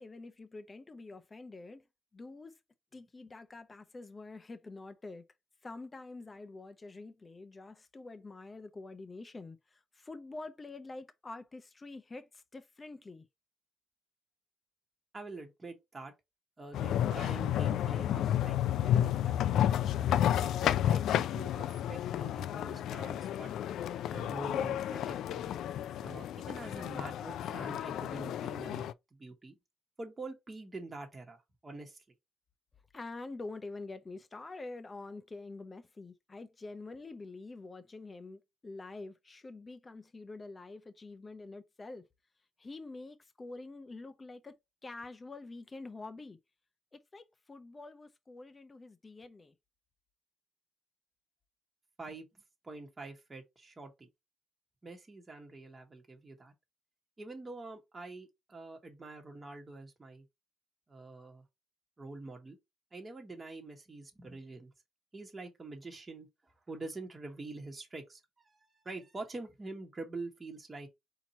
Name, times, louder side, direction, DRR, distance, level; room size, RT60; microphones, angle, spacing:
voice 1, 0.0-1.8 2.1-2.6 2.9-5.3 5.6-13.3 32.9-42.1 42.6-44.6 44.8-46.4 46.9-49.5, left 3 dB, 25° left, 0.6 m, -46 dB
voice 2, 15.1-16.1 16.6-19.6 20.1-23.5 24.1-25.5 26.0-29.6 30.0-32.0 52.0-52.3 52.6-54.1 54.8-56.5 57.2-60.2 60.9-61.4 62.0-62.6 62.9-64.7 65.1-70.9, right 2 dB, 25° right, 1.3 m, -46 dB
sound 1, 16.7-28.9, left 11 dB, 80° left, 0.3 m, -31 dB
4.4 x 2.9 x 4.0 m
cardioid pair, 90°, 0 cm